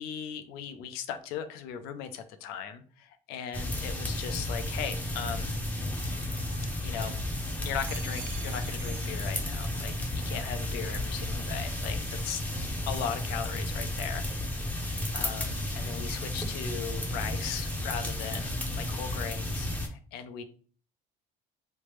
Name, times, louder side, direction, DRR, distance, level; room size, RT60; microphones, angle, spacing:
voice 1, 0.0-5.6 6.8-7.2 7.6-12.4 12.9-14.8 15.1-20.4, left 8 dB, 90° left, 8 dB, 0.5 m, -38 dB
sound 1, 3.5-19.9, left 1 dB, 10° left, 0.6 m, -33 dB
sound 2, 6.0-7.1 7.6-10.0 10.3-10.9, right 8 dB, 55° right, 0.4 m, -49 dB
3.2 x 2.0 x 3.0 m, 0.42 s
cardioid pair, 115°, 16 cm